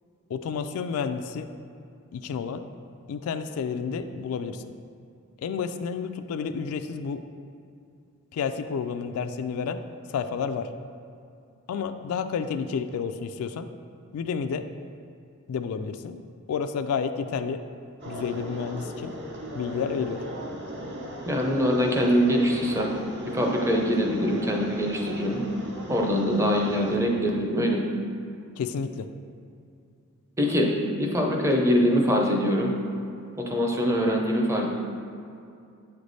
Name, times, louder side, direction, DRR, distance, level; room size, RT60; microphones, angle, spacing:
voice 1, 0.3-1.5 2.1-2.7 3.1-4.7 5.4-7.2 8.3-9.8 10.1-10.7 11.7-13.7 14.1-14.6 15.5-16.2 16.5-17.6 18.1-19.1 19.5-20.2 28.6-29.1, left 6 dB, 75° left, 8 dB, 0.3 m, -30 dB
sound 1, 18.0-26.9, equal, 50° right, 0.7 m, -37 dB
voice 2, 21.3-23.0 23.3-25.4 25.9-27.9 30.4-32.7 33.4-34.7, equal, 15° right, 0 dB, 0.6 m, -23 dB
7.9 x 3.3 x 4.0 m, 2.5 s
head